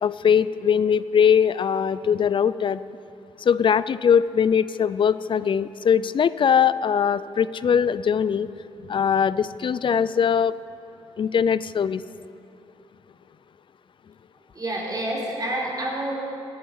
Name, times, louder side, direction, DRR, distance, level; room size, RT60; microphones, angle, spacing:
voice 1, 0.0-2.8 3.4-8.5 8.9-10.5 11.2-12.0, left 7 dB, 50° left, 16 dB, 0.4 m, -21 dB
voice 2, 14.5-16.2, right 1 dB, 35° right, -3 dB, 3.8 m, -28 dB
16.0 x 10.5 x 5.5 m, 2.6 s
cardioid pair, 70°, 11 cm